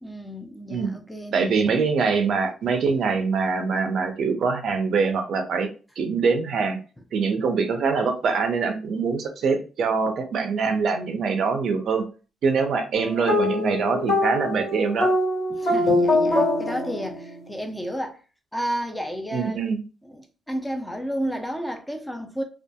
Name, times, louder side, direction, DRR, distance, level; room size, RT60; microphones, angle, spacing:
voice 1, 0.0-1.8 15.5-18.2 18.5-19.6 20.0-22.4, equal, 10° left, 0.5 m, -32 dB
voice 2, 1.3-5.7 6.0-6.8 7.1-12.1 12.4-15.1 19.3-19.8, right 5 dB, 65° right, 0.5 m, -24 dB
sound 1, 12.9-17.5, left 2 dB, 70° left, 1.5 m, -23 dB
2.7 x 2.4 x 2.2 m
cardioid pair, 90°, 0 cm